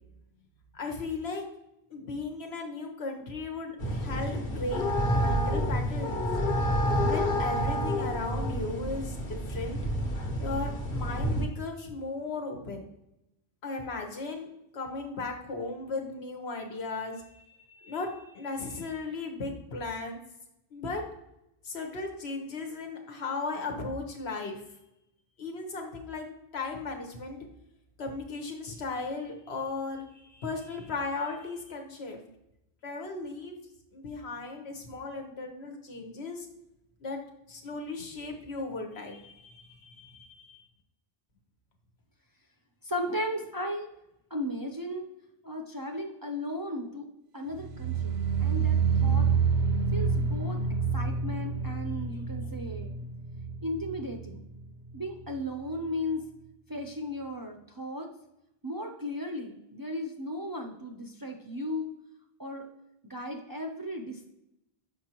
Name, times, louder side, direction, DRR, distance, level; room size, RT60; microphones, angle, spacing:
voice 1, 0.7-1.4 1.9-4.8 5.1-6.2 7.1-9.8 10.4-12.9 13.6-14.5 14.7-20.2 20.7-21.0 21.6-24.6 25.4-26.3 26.5-27.4 28.0-32.2 32.8-33.6 33.9-36.5 37.0-37.2 37.5-40.6, left 3 dB, 90° left, 3 dB, 1.3 m, -36 dB
sound 1, 3.8-11.4, equal, 65° left, 1.2 m, -29 dB
voice 2, 42.8-43.9 44.3-45.1 45.4-47.1 47.3-49.3 49.9-50.6 50.9-53.0 53.6-54.5 54.9-56.3 56.7-58.1 58.6-61.9 62.4-62.7 63.0-64.2, left 1 dB, 30° right, 2 dB, 0.4 m, -35 dB
sound 2, 47.5-54.7 54.9-55.4 55.7-55.8, right 5 dB, 80° right, 0.8 m, -28 dB
6.4 x 5.1 x 2.9 m, 0.85 s
omnidirectional pair, 1.0 m